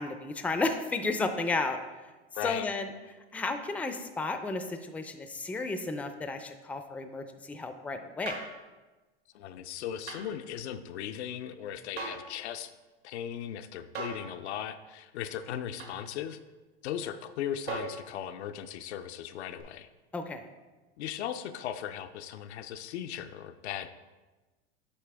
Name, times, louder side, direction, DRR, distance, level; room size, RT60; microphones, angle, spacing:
voice 1, 0.0-2.1 2.4-2.9 3.3-8.4 20.1-20.5, left 3 dB, 5° left, 8 dB, 0.4 m, -33 dB
voice 2, 2.3-2.7 9.3-12.7 13.0-16.4 16.8-19.9 21.0-23.9, left 10 dB, 90° left, 9 dB, 0.6 m, -37 dB
sound 1, 8.3-8.6 10.1-10.3 12.0-12.3 13.9-14.3 15.8-16.0 17.7-18.0 19.6-19.7, right 4 dB, 70° right, 1.8 m, -38 dB
8.4 x 4.9 x 3.4 m, 1.2 s
supercardioid pair, 110°, 32 cm